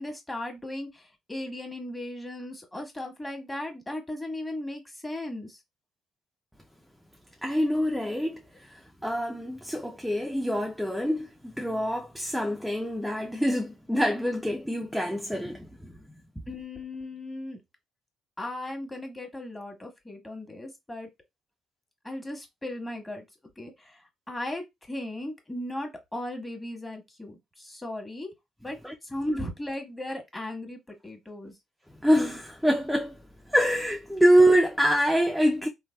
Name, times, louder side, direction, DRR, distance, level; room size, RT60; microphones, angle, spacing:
voice 1, 0.0-5.6 16.5-17.6 18.4-21.1 22.0-23.2 23.6-24.0 24.3-28.3 28.6-28.8 29.1-31.5, left 1 dB, 15° left, 1.2 m, -36 dB
voice 2, 7.4-15.9 28.8-28.9 32.0-33.2 33.5-35.7, equal, ahead, 0.5 m, -25 dB
3.2 x 2.2 x 2.2 m
hypercardioid pair, 55°, 0 cm